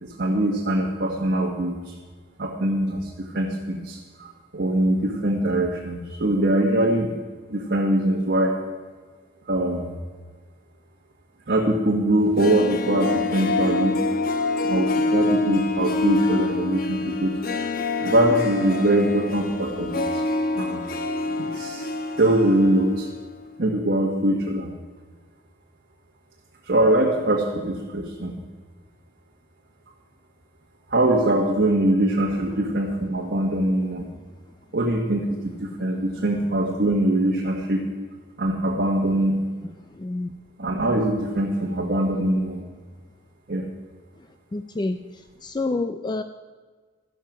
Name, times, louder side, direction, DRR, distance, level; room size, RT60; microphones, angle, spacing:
voice 1, 0.0-1.9 2.4-7.1 7.5-8.5 9.5-9.9 11.5-14.0 14.6-17.3 18.0-20.2 20.5-20.8 21.3-21.9 22.2-23.1 23.6-24.7 26.6-28.4 30.9-34.1 34.7-37.8 38.4-39.4 40.6-42.7 43.5-43.7, right 1 dB, 55° right, -1 dB, 1.3 m, -22 dB
Harp, 12.2-23.2 23.5-23.6, left 2 dB, 50° left, 1.0 m, -26 dB
voice 2, 39.9-40.3 44.5-46.2, left 2 dB, 25° left, 9 dB, 0.4 m, -28 dB
12.5 x 11.0 x 6.1 m, 1.5 s
head